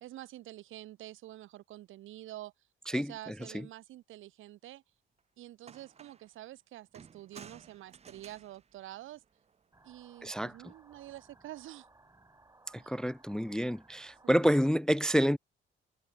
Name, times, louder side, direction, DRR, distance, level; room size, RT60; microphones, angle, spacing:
voice 1, 0.0-2.5 2.9-4.8 5.4-9.2 9.8-11.9 12.7-12.9 14.2-14.5, right 14 dB, 85° right, 2.1 m, -48 dB
voice 2, 2.9-3.7 10.2-10.5 12.7-15.4, equal, 5° left, 0.3 m, -29 dB
sound 1, 5.2-5.3 5.6-6.4 6.9-9.7 10.9-11.3, right 6 dB, 30° right, 0.7 m, -55 dB
sound 2, 9.7-14.7, right 2 dB, 15° right, 3.4 m, -61 dB
cardioid pair, 90°, 20 cm